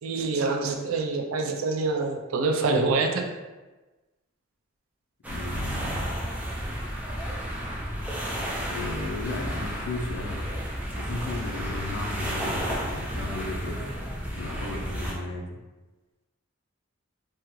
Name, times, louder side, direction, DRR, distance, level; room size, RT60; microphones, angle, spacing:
voice 1, 0.0-3.2, right 3 dB, 85° right, 2 dB, 0.4 m, -26 dB
sound 1, 5.2-15.1, equal, 5° right, 0.4 m, -32 dB
voice 2, 5.3-6.1 8.7-10.5 10.9-15.6, left 2 dB, 80° left, 2 dB, 0.4 m, -35 dB
2.7 x 2.3 x 3.0 m, 1.2 s
head